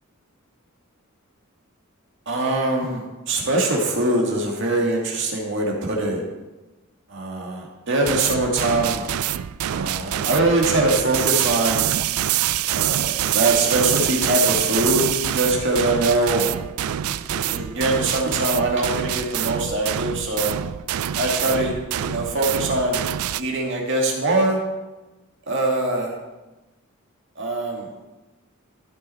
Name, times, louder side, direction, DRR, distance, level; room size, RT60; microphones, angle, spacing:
voice 1, 2.3-6.2 7.1-9.1 9.7-11.9 12.7-16.5 17.4-20.6 21.1-21.7 22.0-23.0 23.4-24.6 25.5-26.2 27.4-28.1, right 2 dB, 60° right, 0 dB, 2.1 m, -22 dB
sound 1, 8.1-23.4, right 11 dB, 90° right, 0.4 m, -25 dB
14.0 x 6.3 x 4.3 m, 1.1 s
head